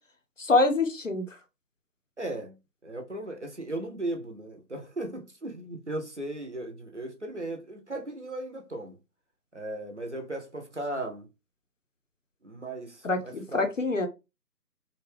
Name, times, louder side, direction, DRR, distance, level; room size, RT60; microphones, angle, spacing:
voice 1, 0.4-1.3 13.0-14.1, left 2 dB, 50° left, 0.6 m, -25 dB
voice 2, 2.2-2.6 2.8-9.0 9.5-11.3 12.4-13.7, right 1 dB, 45° right, 0.5 m, -36 dB
2.5 x 2.2 x 3.1 m
figure-of-eight pair, 160°, 49 cm